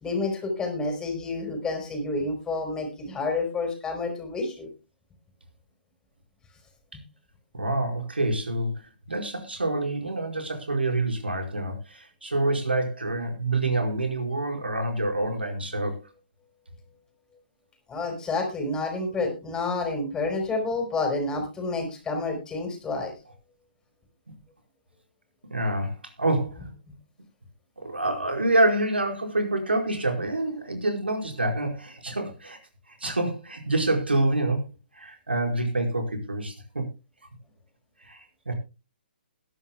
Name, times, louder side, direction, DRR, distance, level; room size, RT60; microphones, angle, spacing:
voice 1, 0.0-4.7 17.9-23.1, left 3 dB, 15° left, 4 dB, 4.8 m, -29 dB
voice 2, 7.5-8.7 9.1-16.0 25.5-26.7 27.8-32.6 32.9-34.6 34.9-36.8 38.0-38.5, right 2 dB, 90° right, 3 dB, 4.8 m, -27 dB
21.5 x 11.0 x 2.2 m, 0.28 s
figure-of-eight pair, 135°, 6 cm